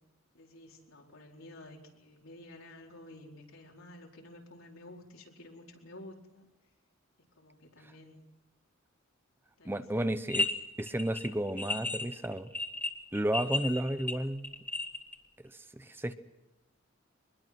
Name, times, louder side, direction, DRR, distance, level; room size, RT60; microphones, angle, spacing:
voice 1, 0.3-6.5 7.4-8.2 9.6-10.0, left 1 dB, 80° left, -1 dB, 4.7 m, -51 dB
voice 2, 9.6-10.5 10.8-12.5 13.1-14.5 15.7-16.1, right 1 dB, 10° right, 11 dB, 0.8 m, -32 dB
sound 1, 10.3-10.5 10.8-15.1, left 2 dB, 10° left, 2.0 m, -33 dB
24.0 x 21.5 x 6.1 m, 1.0 s
head